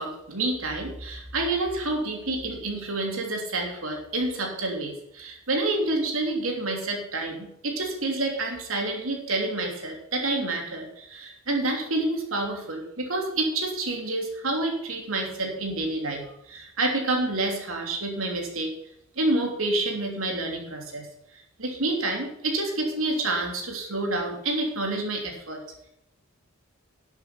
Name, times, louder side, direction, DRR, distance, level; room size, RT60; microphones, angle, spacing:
voice 1, 0.0-18.7 19.2-21.1 21.6-25.6, right 2 dB, 90° right, 1 dB, 3.2 m, -28 dB
11.5 x 8.3 x 5.9 m, 0.78 s
head